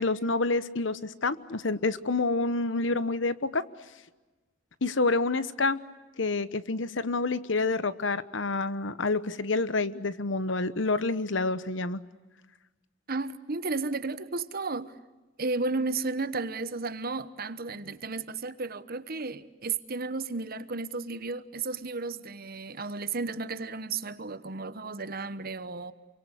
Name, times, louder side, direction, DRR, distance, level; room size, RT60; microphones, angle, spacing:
voice 1, 0.0-3.6 4.8-5.8 6.2-12.0, left 3 dB, 65° left, 1.1 m, -28 dB
voice 2, 13.1-14.9 15.4-25.9, right 3 dB, 50° right, 1.1 m, -33 dB
28.5 x 24.0 x 8.2 m
head